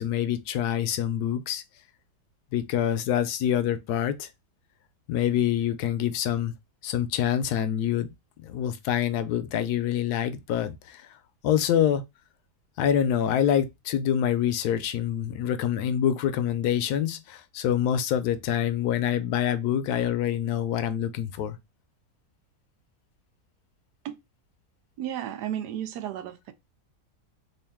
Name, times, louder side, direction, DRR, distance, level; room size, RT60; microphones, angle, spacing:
voice 1, 0.0-1.6 2.5-4.3 5.1-6.5 6.8-8.1 8.4-11.1 11.4-12.0 12.8-21.6, left 10 dB, 75° left, 1.1 m, -26 dB
voice 2, 25.0-26.5, right 10 dB, 85° right, 1.2 m, -33 dB
3.8 x 2.5 x 3.4 m
omnidirectional pair, 1.7 m